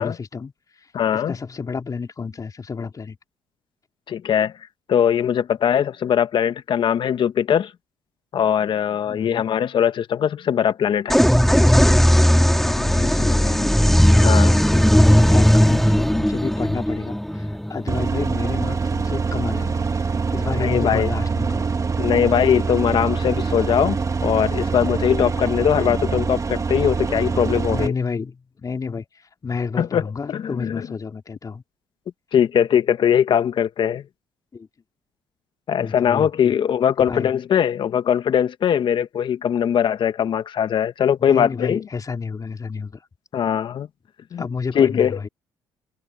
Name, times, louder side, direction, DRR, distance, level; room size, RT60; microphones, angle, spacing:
voice 1, 0.0-0.9 1.1-3.2 9.1-9.5 12.6-21.7 27.7-31.6 34.5-34.7 35.8-36.5 37.1-37.3 41.2-43.0 44.4-45.3, left 5 dB, 40° left, 3.8 m, -31 dB
voice 2, 0.9-1.3 4.1-4.6 4.9-7.7 8.3-11.2 14.2-14.5 20.6-21.1 22.0-24.0 24.2-27.9 29.8-30.0 30.3-30.9 32.3-34.0 35.7-41.8 43.3-43.9 44.3-44.5 44.7-45.2, left 9 dB, 60° left, 1.4 m, -20 dB
sound 1, 11.1-18.7, equal, 5° left, 3.4 m, -16 dB
sound 2, 17.9-27.9, right 5 dB, 35° right, 1.6 m, -24 dB
supercardioid pair, 60°, 9 cm